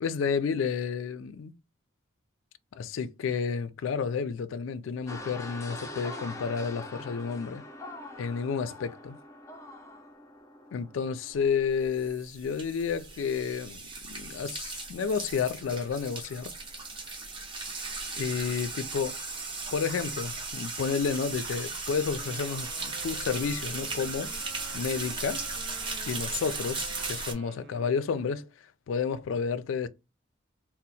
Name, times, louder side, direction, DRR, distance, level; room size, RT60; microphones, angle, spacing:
voice 1, 0.0-1.5 2.8-7.6 8.2-9.1 10.7-16.5 18.2-19.2 19.7-24.3 24.7-25.4 26.1-28.5 28.9-29.9, left 6 dB, 80° left, 0.3 m, -31 dB
sound 1, 5.1-12.1, left 1 dB, 15° left, 0.4 m, -44 dB
sound 2, 11.7-27.3, right 3 dB, 25° right, 0.6 m, -37 dB
Wind instrument woodwind instrument, 22.1-28.5, right 4 dB, 70° right, 0.5 m, -50 dB
2.8 x 2.0 x 4.0 m
head